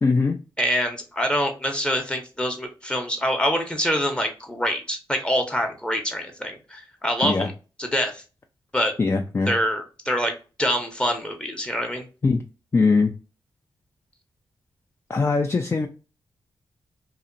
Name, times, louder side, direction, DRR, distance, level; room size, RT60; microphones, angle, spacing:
voice 1, 0.0-0.4 7.2-7.5 9.0-9.5 12.2-12.4 12.7-13.1 15.1-15.9, left 4 dB, 30° left, 0.3 m, -21 dB
voice 2, 0.6-7.5 7.8-8.2 8.7-8.9 9.5-12.1, equal, 10° left, 0.7 m, -25 dB
2.7 x 2.0 x 2.5 m
cardioid pair, 70°, 9 cm